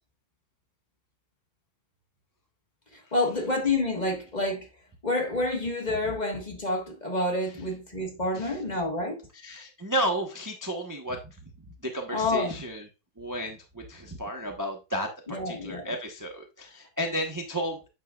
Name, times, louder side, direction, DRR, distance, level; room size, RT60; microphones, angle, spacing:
voice 1, 2.9-4.7 5.0-9.3 12.1-12.6 15.3-15.9, left 2 dB, 25° left, 1.4 m, -28 dB
voice 2, 9.4-11.4 11.8-12.8 13.2-17.9, equal, 20° right, 0.5 m, -33 dB
9.1 x 6.7 x 2.4 m
omnidirectional pair, 2.2 m